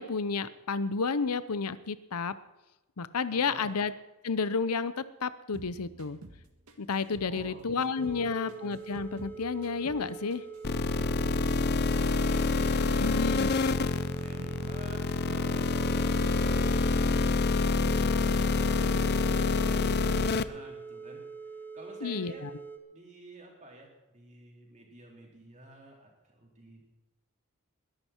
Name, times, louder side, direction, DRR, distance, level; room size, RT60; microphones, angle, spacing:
voice 1, 0.0-2.3 3.0-3.9 4.2-6.2 6.8-10.4 13.0-13.5 22.0-22.5, left 4 dB, 85° left, 15 dB, 0.7 m, -31 dB
voice 2, 3.3-3.8 7.2-8.5 11.8-13.1 13.8-15.0 15.3-22.4 22.9-26.8, right 1 dB, 35° right, -1 dB, 4.2 m, -51 dB
sound 1, 5.5-8.2 8.5-11.2 11.4-14.8 15.1-15.5 15.8-18.5 18.7-19.1 19.4-20.1, right 1 dB, 80° right, 1.7 m, -50 dB
sound 2, 8.0-22.8, right 5 dB, 10° left, 1.2 m, -44 dB
sound 3, 10.6-20.4, left 3 dB, 45° left, 0.6 m, -27 dB
21.5 x 11.0 x 4.5 m, 1.0 s
head